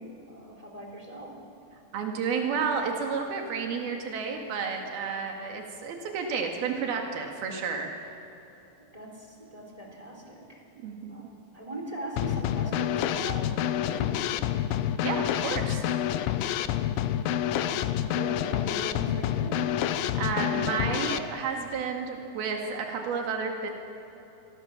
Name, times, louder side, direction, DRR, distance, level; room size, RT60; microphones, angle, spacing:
voice 1, 0.0-1.4 8.9-10.6 11.1-14.4 17.6-19.7, right 1 dB, 10° right, 1 dB, 3.3 m, -40 dB
voice 2, 1.9-7.9 10.8-11.1 15.0-15.8 20.2-23.7, right 5 dB, 85° right, 2 dB, 4.0 m, -31 dB
Drum kit / Snare drum, 12.2-21.2, left 11 dB, 80° left, 2.5 m, -28 dB
27.5 x 21.5 x 7.3 m, 3.0 s
omnidirectional pair, 4.3 m